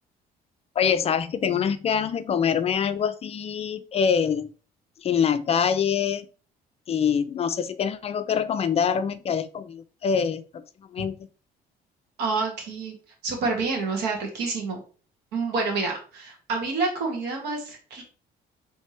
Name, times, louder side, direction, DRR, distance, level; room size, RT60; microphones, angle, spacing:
voice 1, 0.8-4.5 5.0-6.3 6.9-10.6 10.9-11.2, left 7 dB, 35° left, 12 dB, 0.4 m, -25 dB
voice 2, 12.2-12.9 13.2-14.8 15.3-18.0, right 3 dB, 85° right, 1 dB, 1.7 m, -28 dB
3.4 x 3.4 x 4.2 m, 0.38 s
cardioid pair, 110°, 17 cm